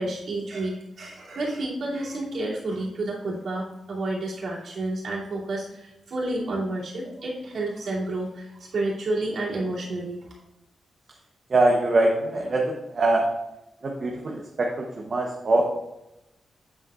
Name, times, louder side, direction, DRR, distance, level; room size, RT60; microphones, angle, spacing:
voice 1, 0.0-10.2, right 2 dB, 70° right, -7 dB, 2.7 m, -30 dB
voice 2, 11.5-13.3 13.8-15.6, right 2 dB, 45° right, 0 dB, 0.9 m, -23 dB
8.2 x 7.4 x 2.4 m, 0.90 s
cardioid pair, 100°, 0 cm